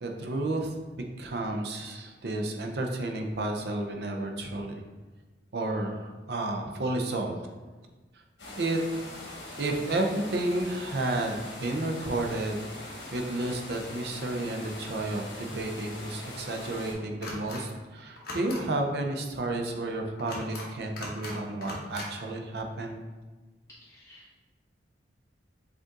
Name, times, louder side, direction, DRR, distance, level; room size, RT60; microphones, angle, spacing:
voice 1, 0.0-4.8 5.5-7.3 8.6-8.8 9.6-23.0, right 2 dB, 60° right, 3 dB, 0.5 m, -31 dB
sound 1, 8.4-16.9, left 1 dB, 75° left, 1.2 m, -42 dB
sound 2, 17.2-17.6 18.2-18.6 20.2-20.7 21.0-21.3 21.6-22.1, left 1 dB, 55° left, 0.9 m, -38 dB
voice 2, 23.9-24.4, left 1 dB, 15° left, -10 dB, 1.2 m, -55 dB
5.1 x 2.5 x 3.7 m, 1.3 s
head